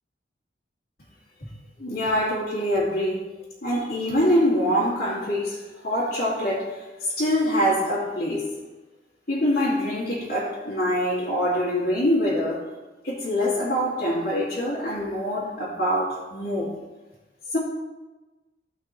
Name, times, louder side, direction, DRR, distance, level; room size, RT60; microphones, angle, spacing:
voice 1, 1.8-3.2 3.6-8.5 9.3-12.6 13.0-16.7 17.5-17.6, equal, 55° left, -9 dB, 2.5 m, -24 dB
16.0 x 5.8 x 3.2 m, 1.2 s
head